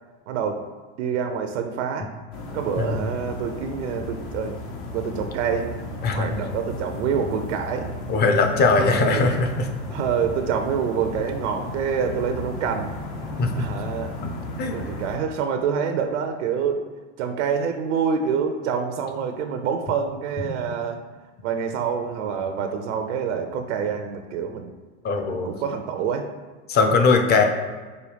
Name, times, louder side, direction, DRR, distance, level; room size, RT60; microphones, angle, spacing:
voice 1, 0.3-0.6 1.0-2.1 2.5-4.6 4.9-5.7 6.1-7.9 8.8-9.4 9.9-12.9 13.6-14.1 14.7-16.9 17.2-21.0 21.4-24.7 25.3-26.3, right 6 dB, 75° right, 6 dB, 0.5 m, -26 dB
sound 1, 2.3-15.2, left 2 dB, 65° left, 0.9 m, -34 dB
voice 2, 8.1-9.7 13.4-13.6 14.2-14.3 14.6-14.7 20.4-20.6 25.0-25.5 26.7-27.4, left 4 dB, 30° left, 4 dB, 0.5 m, -20 dB
5.0 x 2.2 x 3.3 m, 1.4 s
hypercardioid pair, 100°, 36 cm